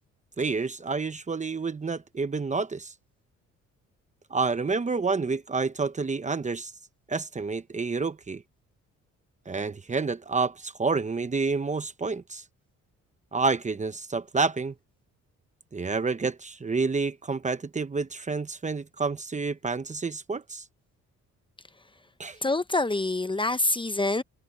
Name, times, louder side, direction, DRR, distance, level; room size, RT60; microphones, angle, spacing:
voice 1, 0.4-2.9 4.3-6.7 7.1-8.4 9.5-12.4 13.3-14.7 15.7-20.6 22.2-22.4, right 4 dB, 25° right, 1.0 m, -29 dB
voice 2, 22.4-24.2, left 2 dB, 15° left, 0.9 m, -26 dB
cardioid pair, 90°, 30 cm